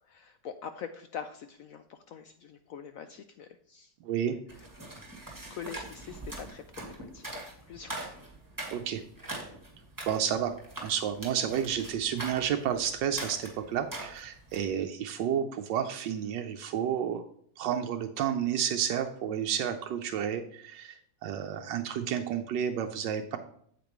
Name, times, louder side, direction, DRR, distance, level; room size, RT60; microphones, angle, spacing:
voice 1, 0.0-3.9 4.5-4.7 5.5-8.1 14.8-14.9, left 7 dB, 75° left, 8 dB, 0.8 m, -44 dB
voice 2, 4.0-4.4 8.7-9.0 10.1-10.5 10.8-17.2 17.6-23.4, right 9 dB, 85° right, 5 dB, 1.3 m, -31 dB
sound 1, 4.5-14.7, right 2 dB, 10° right, 1.9 m, -42 dB
8.4 x 8.0 x 3.0 m, 0.66 s
omnidirectional pair, 1.9 m